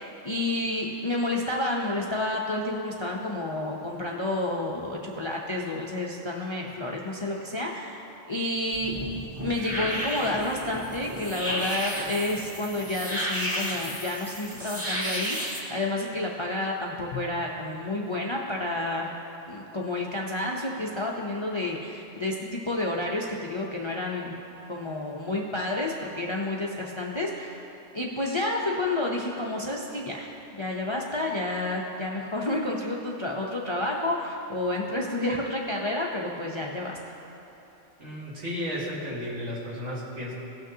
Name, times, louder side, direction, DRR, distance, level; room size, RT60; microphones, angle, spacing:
voice 1, 0.0-8.9 9.4-19.1 19.5-24.3 24.7-27.6 27.9-30.3 30.6-37.0, left 2 dB, 35° left, -2 dB, 0.5 m, -30 dB
sound 1, 8.7-15.6, equal, 10° right, 1.6 m, -32 dB
Bowed string instrument, 17.1-18.0, left 10 dB, 70° left, 0.8 m, -41 dB
voice 2, 38.0-40.3, equal, 75° right, -7 dB, 2.2 m, -33 dB
17.5 x 6.2 x 2.8 m, 3.0 s
omnidirectional pair, 1.2 m